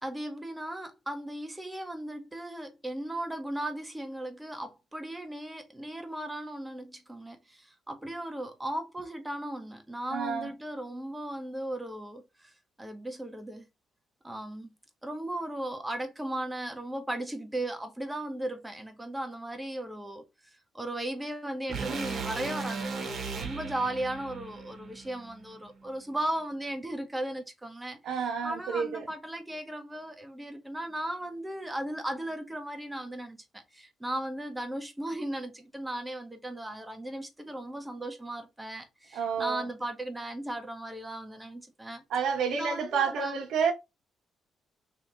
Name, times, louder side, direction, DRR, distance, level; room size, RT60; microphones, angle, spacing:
voice 1, 0.0-12.5 12.8-13.6 14.2-14.7 15.0-20.2 20.5-42.0 42.5-43.4, right 1 dB, 10° right, 0.9 m, -36 dB
voice 2, 10.1-10.5 28.0-29.1 39.1-39.7 42.1-43.7, right 6 dB, 75° right, 1.2 m, -29 dB
sound 1, 21.7-25.9, right 4 dB, 50° right, 1.1 m, -37 dB
3.2 x 2.8 x 3.8 m
cardioid pair, 90°, 0 cm